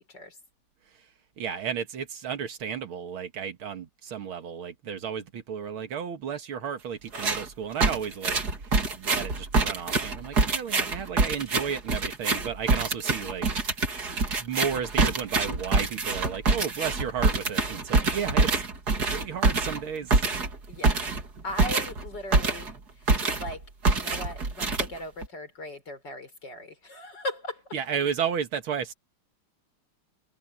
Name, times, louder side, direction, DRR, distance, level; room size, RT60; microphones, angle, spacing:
voice 1, 1.4-13.5 14.4-18.6 19.0-20.2 27.7-29.0, right 7 dB, 75° right, 2.4 m, -33 dB
sound 1, 7.1-7.5 7.8-22.8 23.1-23.5 23.8-25.3, right 3 dB, 50° right, 3.1 m, -25 dB
voice 2, 20.7-21.1 21.4-23.1 23.4-27.8, left 1 dB, 55° left, 5.3 m, -38 dB
omnidirectional pair, 2.3 m